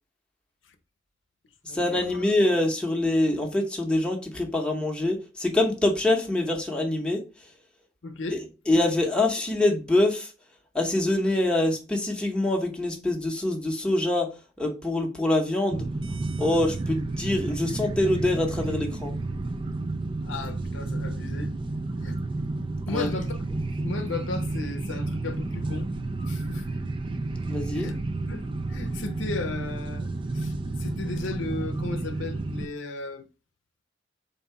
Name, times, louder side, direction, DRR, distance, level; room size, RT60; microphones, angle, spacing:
voice 1, 1.6-7.2 8.3-10.3 10.7-14.3 14.6-15.9 16.4-19.1 22.9-23.1 27.4-27.9, left 1 dB, 5° left, 0.8 m, -25 dB
voice 2, 8.0-8.4 20.2-21.5 22.0-22.3 22.9-23.4 23.8-25.9 26.3-26.6 27.7-28.0 28.3-30.1 30.3-33.2, left 3 dB, 75° left, 0.7 m, -35 dB
sound 1, 15.7-32.7, right 2 dB, 25° right, 0.4 m, -31 dB
4.0 x 2.8 x 4.5 m
head